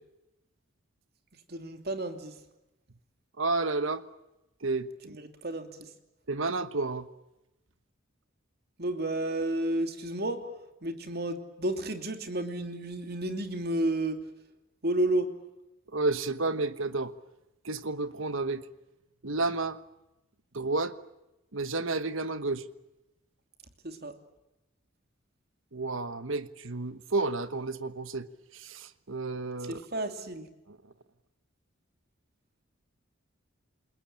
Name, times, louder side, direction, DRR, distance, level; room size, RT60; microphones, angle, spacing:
voice 1, 1.5-2.3 5.1-5.9 8.8-10.4 10.8-14.2 14.8-15.3 23.8-24.1 29.6-30.4, right 1 dB, 50° right, 2.8 m, -31 dB
voice 2, 3.4-4.0 4.6-5.2 6.3-7.1 15.9-17.1 17.6-18.6 19.2-19.8 20.5-20.9 21.5-22.6 25.7-28.3 28.5-29.8, right 3 dB, 70° right, 1.3 m, -31 dB
28.5 x 21.0 x 8.9 m
head